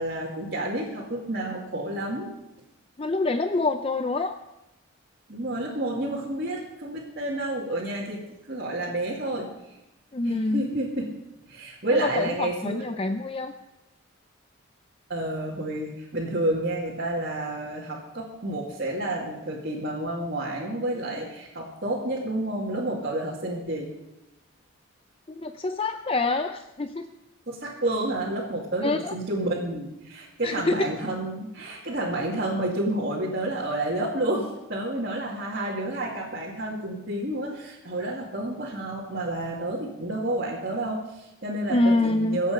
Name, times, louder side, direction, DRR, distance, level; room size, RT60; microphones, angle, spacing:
voice 1, 0.0-2.3 5.3-9.5 10.2-11.1 11.5-12.9 15.1-23.9 27.5-42.5, right 1 dB, 45° right, -5 dB, 2.2 m, -30 dB
voice 2, 3.0-4.3 10.1-10.7 11.9-13.5 25.3-27.1 28.8-29.1 30.4-30.9 41.7-42.4, left 2 dB, 25° left, 8 dB, 0.4 m, -26 dB
23.0 x 8.2 x 5.1 m, 0.93 s
head